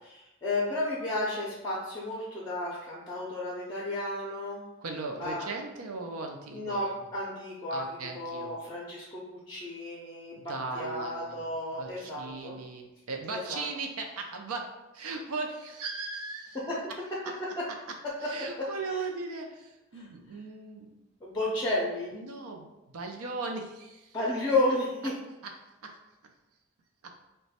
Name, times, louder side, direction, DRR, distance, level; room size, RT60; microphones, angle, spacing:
voice 1, 0.0-4.6 5.2-5.4 6.5-7.9 8.1-12.5 13.3-13.6 16.5-16.8 18.9-19.0 19.9-20.0 21.2-22.1 24.1-25.1, left 2 dB, 15° left, -5 dB, 0.5 m, -32 dB
voice 2, 4.8-6.8 7.7-8.6 10.3-11.5 11.8-16.6 16.9-17.3 17.7-17.8 18.2-20.9 22.1-24.2 25.4-25.5 25.8-26.0 27.0-27.2, right 3 dB, 85° right, 3 dB, 0.5 m, -38 dB
3.0 x 2.2 x 4.2 m, 0.99 s
head